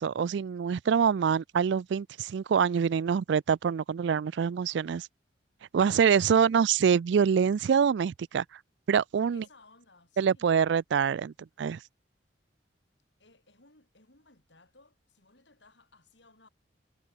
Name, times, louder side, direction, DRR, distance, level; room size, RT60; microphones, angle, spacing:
voice 1, 0.0-5.1 5.7-8.4 8.9-9.4 10.2-11.8, right 7 dB, 70° right, 0.3 m, -25 dB
voice 2, 9.3-10.6 13.2-16.5, left 3 dB, 70° left, 7.2 m, -60 dB
head